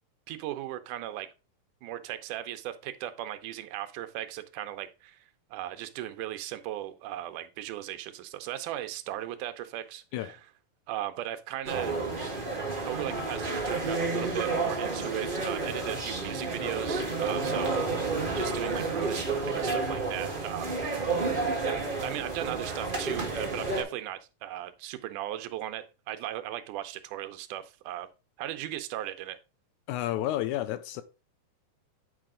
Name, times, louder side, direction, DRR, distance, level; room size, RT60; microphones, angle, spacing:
voice 1, 0.3-1.3 1.8-5.2 5.5-10.4 10.9-12.0 12.9-18.0 18.3-20.7 21.6-28.1 28.4-29.4, right 13 dB, 85° right, 2.3 m, -37 dB
sound 1, 11.6-23.8, right 3 dB, 25° right, 1.3 m, -31 dB
voice 2, 29.9-31.0, left 13 dB, 80° left, 1.9 m, -31 dB
8.7 x 4.8 x 3.7 m
omnidirectional pair, 3.6 m